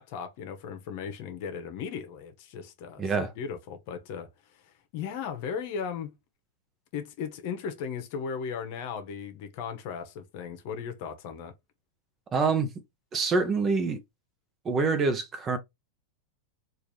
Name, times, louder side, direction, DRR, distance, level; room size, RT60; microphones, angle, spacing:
voice 1, 0.0-4.3 4.9-6.1 6.9-11.5, left 6 dB, 55° left, 1.0 m, -36 dB
voice 2, 3.0-3.3 12.3-12.7 13.1-14.0 14.6-15.6, right 4 dB, 25° right, 0.8 m, -25 dB
3.7 x 2.6 x 3.1 m
supercardioid pair, 135°, 0 cm